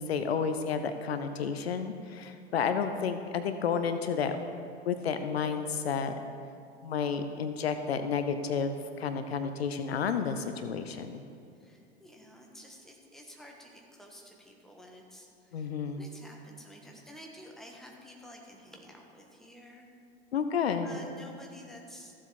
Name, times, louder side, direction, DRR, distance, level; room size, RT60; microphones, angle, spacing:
voice 1, 0.0-4.4 4.9-6.1 6.8-11.2 15.5-16.0 20.3-20.9, left 6 dB, 70° left, 9 dB, 0.7 m, -31 dB
voice 2, 11.6-19.9 20.8-22.1, equal, ahead, 0 dB, 1.5 m, -51 dB
15.0 x 7.4 x 4.3 m, 2.5 s
figure-of-eight pair, 85°, 33 cm